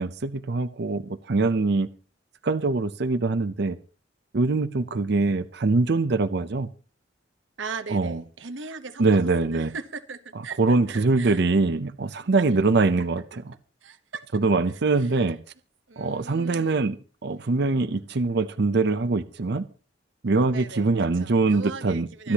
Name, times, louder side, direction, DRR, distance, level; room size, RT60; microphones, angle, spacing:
voice 1, 0.0-1.9 2.4-3.8 4.3-6.7 7.9-8.2 9.0-9.7 10.6-13.2 14.3-15.4 16.0-19.7 20.2-22.3, right 3 dB, 60° right, 0.6 m, -23 dB
voice 2, 7.6-11.4 12.4-12.5 13.8-14.2 15.0-15.1 15.9-16.9 20.5-22.3, right 4 dB, 85° right, 1.1 m, -39 dB
24.5 x 10.0 x 2.9 m
head